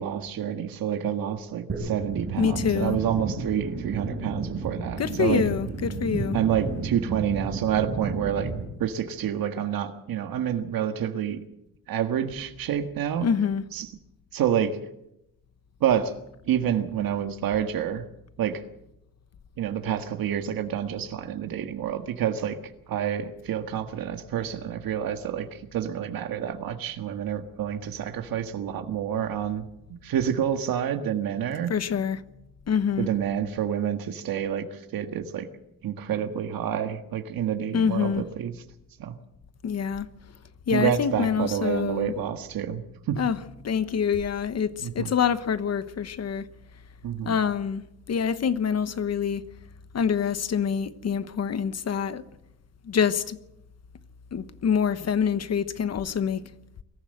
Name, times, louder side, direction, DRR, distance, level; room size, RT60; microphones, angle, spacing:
voice 1, 0.0-5.4 6.3-8.5 8.8-11.4 11.9-13.3 13.7-13.9 14.3-14.8 15.8-16.1 16.5-18.0 18.4-18.6 19.6-22.6 22.9-29.6 30.0-31.7 33.0-35.5 35.8-38.5 39.0-39.1 40.7-43.2 44.8-45.1 47.0-47.3, right 9 dB, 85° right, 1.7 m, -28 dB
sound 1, 1.7-8.6, right 4 dB, 40° right, 5.3 m, -32 dB
voice 2, 2.4-3.0 5.0-6.4 13.2-13.6 31.7-32.2 32.7-33.1 37.7-38.2 39.6-40.1 40.7-42.1 43.2-43.4 43.6-46.5 47.2-47.8 48.1-49.4 49.9-52.2 52.8-53.4 54.3-56.5, left 7 dB, 50° left, 1.1 m, -26 dB
23.5 x 14.5 x 7.8 m
wide cardioid pair, 160°, 34 cm